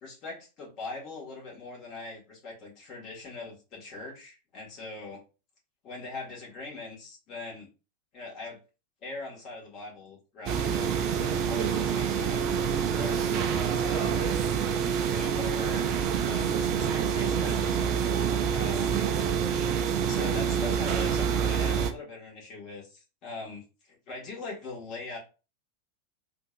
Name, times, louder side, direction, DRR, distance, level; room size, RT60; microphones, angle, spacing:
voice 1, 0.0-5.2 5.8-7.7 8.1-8.6 9.0-12.4 12.9-14.7 15.1-15.8 16.2-19.0 20.0-25.2, left 3 dB, 35° left, -3 dB, 1.8 m, -41 dB
sound 1, 10.5-21.9, right 7 dB, 40° right, 0.5 m, -27 dB
3.7 x 2.6 x 2.6 m, 0.32 s
figure-of-eight pair, 90°, 0 cm